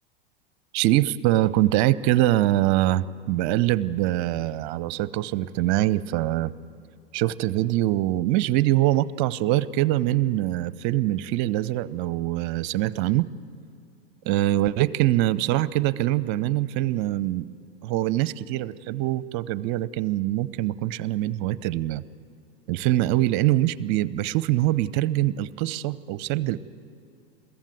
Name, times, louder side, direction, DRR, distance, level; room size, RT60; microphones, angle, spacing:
voice 1, 0.7-6.5 7.1-13.3 14.2-17.5 17.8-22.0 22.7-26.6, right 15 dB, 50° right, 18 dB, 0.8 m, -23 dB
22.0 x 15.5 x 9.3 m, 2.4 s
hypercardioid pair, 95°, 31 cm